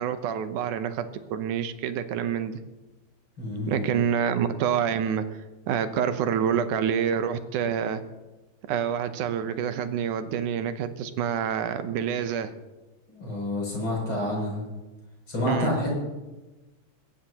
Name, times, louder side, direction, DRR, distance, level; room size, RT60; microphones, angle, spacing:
voice 1, 0.0-2.6 3.7-5.4 5.7-8.0 8.7-12.5 15.5-15.7, right 8 dB, 85° right, 10 dB, 2.3 m, -27 dB
voice 2, 3.4-3.8 13.1-14.6 15.3-15.9, left 1 dB, 40° left, -3 dB, 7.7 m, -28 dB
22.0 x 16.0 x 2.9 m, 1.1 s
omnidirectional pair, 3.5 m